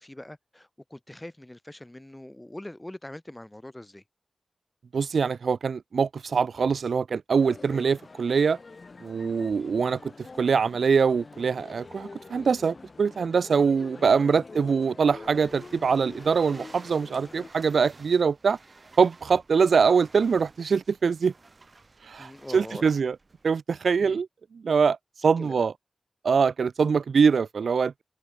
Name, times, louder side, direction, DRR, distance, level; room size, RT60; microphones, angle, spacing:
voice 1, 0.0-4.0 7.7-7.8 9.3-9.4 22.2-22.9 24.0-24.2 25.4-25.6, left 1 dB, 10° left, 1.4 m, -42 dB
voice 2, 4.9-8.6 9.0-10.1 10.4-18.6 19.0-21.3 22.0-23.2 23.4-24.3 24.5-25.0 25.2-25.7 26.2-28.0, right 5 dB, 80° right, 0.4 m, -23 dB
Male speech man speaking, 7.4-17.5, left 3 dB, 40° left, 1.5 m, -46 dB
sound 1, 15.0-23.5, right 3 dB, 40° right, 6.3 m, -53 dB
wide cardioid pair, 120°, 0 cm